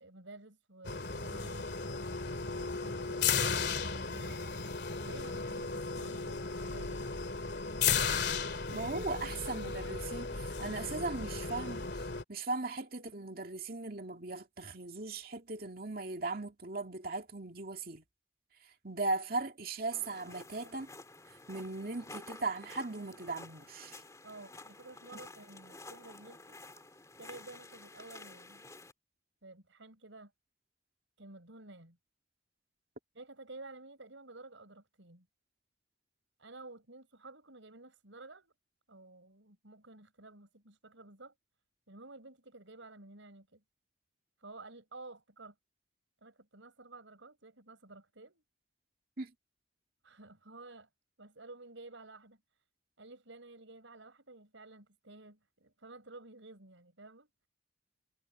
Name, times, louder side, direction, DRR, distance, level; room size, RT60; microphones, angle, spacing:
voice 1, 0.0-1.7 2.5-3.6 3.9-4.5 5.0-7.0 24.2-26.6 27.2-28.7 29.4-30.3 31.2-32.0 33.1-35.3 36.4-38.5 38.9-41.3 41.9-43.6 44.4-45.5 46.2-48.4 50.0-50.9 51.2-52.4 53.0-57.3, right 2 dB, 90° right, 6.6 m, -52 dB
sound 1, 0.8-12.2, left 5 dB, 60° left, 2.7 m, -35 dB
voice 2, 8.7-11.9 12.3-18.0 18.8-20.9 21.5-24.0 49.2-49.3, right 3 dB, 50° right, 2.4 m, -38 dB
sound 2, 19.9-28.9, left 2 dB, 15° left, 3.0 m, -52 dB
head